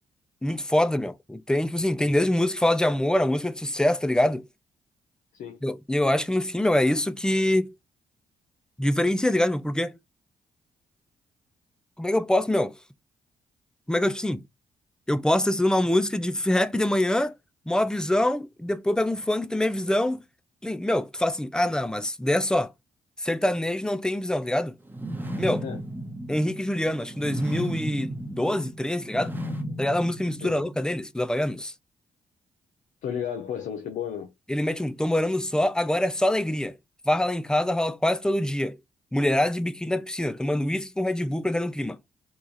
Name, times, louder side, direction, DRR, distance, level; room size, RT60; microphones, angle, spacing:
voice 1, 0.4-4.5 5.6-7.7 8.8-10.0 12.0-12.7 13.9-14.4 15.1-17.3 17.7-20.2 20.6-22.7 23.2-24.7 25.4-25.6 26.3-29.3 29.8-31.7 34.5-36.7 37.1-38.8 39.1-42.0, left 1 dB, 5° left, 0.4 m, -25 dB
sound 1, 24.9-30.9, equal, 15° right, 1.0 m, -34 dB
voice 2, 25.5-25.8 30.4-30.5 33.0-34.3, left 8 dB, 75° left, 0.6 m, -33 dB
3.0 x 2.3 x 3.9 m
supercardioid pair, 60°, 13 cm